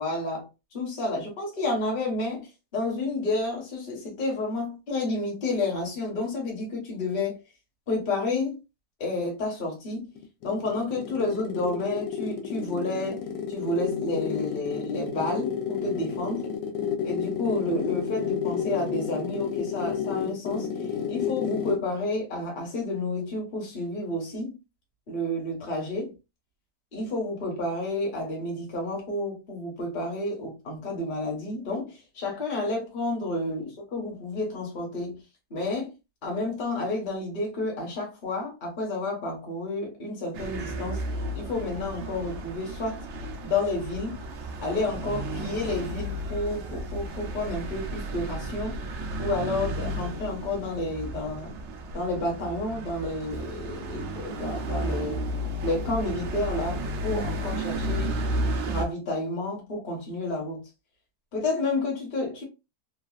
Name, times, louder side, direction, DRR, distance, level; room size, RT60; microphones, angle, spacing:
voice 1, 0.0-7.4 7.9-8.6 9.0-10.1 10.4-13.2 13.5-16.5 17.0-20.7 21.1-24.6 25.1-26.1 26.9-35.2 35.5-35.9 36.2-41.0 41.3-43.0 43.4-44.2 44.6-48.8 49.2-51.5 51.9-55.2 55.6-58.2 58.6-60.6 61.3-62.4, left 2 dB, 35° left, 1.0 m, -30 dB
sound 1, 10.2-21.9, left 7 dB, 85° left, 1.3 m, -31 dB
sound 2, 40.3-58.8, right 1 dB, 70° right, 0.6 m, -33 dB
3.2 x 2.3 x 2.4 m
omnidirectional pair, 1.8 m